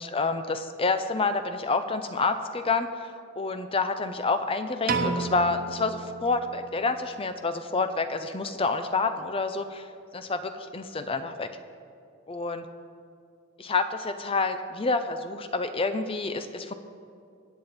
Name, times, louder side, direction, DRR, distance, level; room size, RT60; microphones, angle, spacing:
voice 1, 0.0-3.1 3.4-9.9 10.1-11.5 12.3-12.6 13.6-16.7, left 3 dB, 25° left, 9 dB, 0.5 m, -28 dB
Piano, 4.9-7.1, right 4 dB, 45° right, 0.9 m, -32 dB
22.5 x 8.5 x 4.2 m, 2.4 s
head